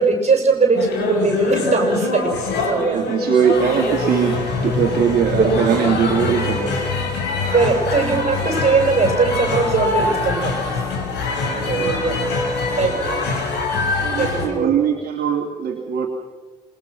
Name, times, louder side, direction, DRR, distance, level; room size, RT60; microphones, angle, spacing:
voice 1, 0.0-2.3 2.7-3.1 5.4-5.5 7.5-10.6 11.7-12.2 12.8-13.2 14.2-14.8, right 4 dB, 35° right, 3 dB, 7.0 m, -20 dB
sound 1, 0.7-14.5, left 3 dB, 65° left, 6.4 m, -23 dB
voice 2, 2.9-6.9 11.5-12.1 13.9-16.1, right 7 dB, 55° right, 2 dB, 2.6 m, -21 dB
27.0 x 21.5 x 6.1 m, 1.3 s
figure-of-eight pair, 40°, 19 cm